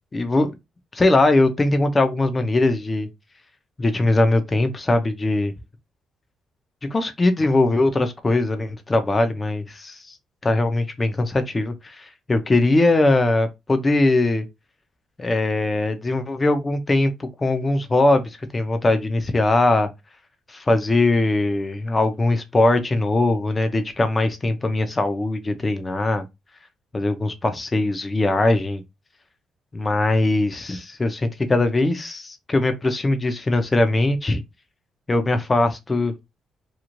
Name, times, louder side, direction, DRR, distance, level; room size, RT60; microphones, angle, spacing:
voice 1, 0.1-0.5 0.9-3.1 3.8-5.5 6.9-10.1 10.4-14.5 15.2-18.2 18.5-19.9 20.5-26.2 26.9-28.8 29.7-34.4 35.1-36.1, left 2 dB, 25° left, 0.6 m, -21 dB
3.0 x 2.4 x 2.5 m
cardioid pair, 90°, 0 cm